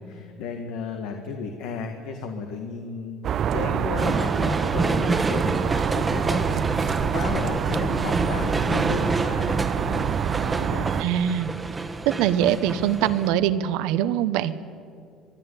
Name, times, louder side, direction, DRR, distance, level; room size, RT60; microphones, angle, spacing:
voice 1, 0.0-11.0, left 6 dB, 80° left, 5 dB, 1.7 m, -34 dB
sound 1, 3.2-11.0, right 9 dB, 50° right, 0.5 m, -27 dB
sound 2, 4.0-13.3, right 3 dB, 15° right, 1.3 m, -28 dB
voice 2, 11.0-11.5 12.1-14.6, right 11 dB, 80° right, 14 dB, 0.9 m, -23 dB
23.5 x 12.0 x 9.9 m, 2.4 s
supercardioid pair, 105°, 0 cm